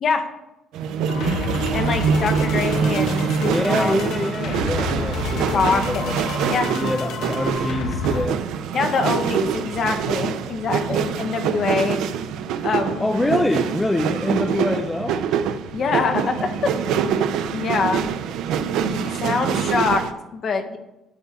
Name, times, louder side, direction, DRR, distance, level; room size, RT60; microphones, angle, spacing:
sound 1, 0.7-20.1, right 7 dB, 80° right, 0.4 m, -25 dB
sound 2, 1.1-8.3, left 4 dB, 65° left, 0.8 m, -29 dB
voice 1, 1.1-1.4 3.4-6.2 6.7-8.4 13.0-15.2 16.1-16.2, left 1 dB, 10° left, 5 dB, 0.3 m, -25 dB
voice 2, 1.7-4.0 5.5-6.2 6.5-6.7 8.7-12.0 12.6-13.1 15.7-16.7 17.5-18.1 18.8-20.0 20.3-20.8, left 4 dB, 40° left, 6 dB, 0.7 m, -24 dB
11.5 x 6.8 x 2.4 m, 0.95 s
cardioid pair, 175°, 0 cm